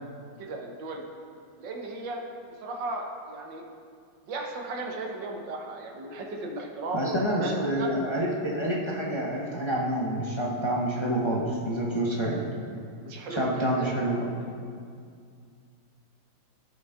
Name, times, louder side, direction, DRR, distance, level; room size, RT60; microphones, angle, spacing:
voice 1, 0.4-1.0 1.6-2.2 2.6-3.6 4.3-7.9 13.0-13.9, right 2 dB, 75° right, 1 dB, 1.8 m, -35 dB
voice 2, 6.9-12.4 13.3-14.2, right 1 dB, 25° left, -4 dB, 0.7 m, -28 dB
16.0 x 5.4 x 3.7 m, 2.2 s
omnidirectional pair, 2.1 m